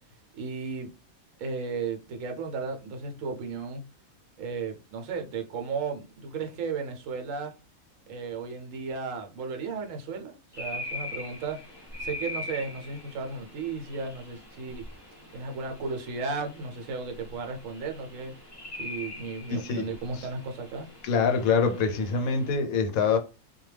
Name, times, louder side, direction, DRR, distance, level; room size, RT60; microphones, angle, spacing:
voice 1, 0.4-0.9 1.4-3.8 4.4-7.5 8.1-11.6 12.0-14.8 15.3-18.3 18.8-20.9, right 4 dB, 70° right, 0.9 m, -34 dB
sound 1, 10.5-22.5, left 2 dB, 25° left, 0.6 m, -42 dB
voice 2, 19.5-20.3 21.0-23.2, left 5 dB, 85° left, 1.0 m, -25 dB
2.2 x 2.2 x 3.2 m
omnidirectional pair, 1.4 m